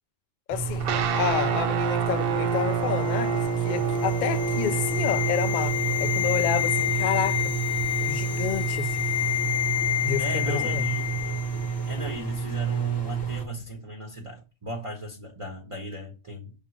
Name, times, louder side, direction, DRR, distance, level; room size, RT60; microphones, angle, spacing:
voice 1, 0.5-7.5 8.0-9.1 10.0-10.9, left 9 dB, 70° left, 0.4 m, -30 dB
sound 1, 0.5-13.4, right 6 dB, 20° left, 1.4 m, -30 dB
sound 2, 0.8-11.3, right 6 dB, 60° right, 0.7 m, -31 dB
sound 3, 2.5-11.8 12.0-12.2, left 12 dB, 35° left, 0.7 m, -29 dB
voice 2, 10.2-11.1 11.7-16.5, right 2 dB, 25° right, 1.0 m, -36 dB
6.2 x 3.7 x 4.9 m
omnidirectional pair, 1.4 m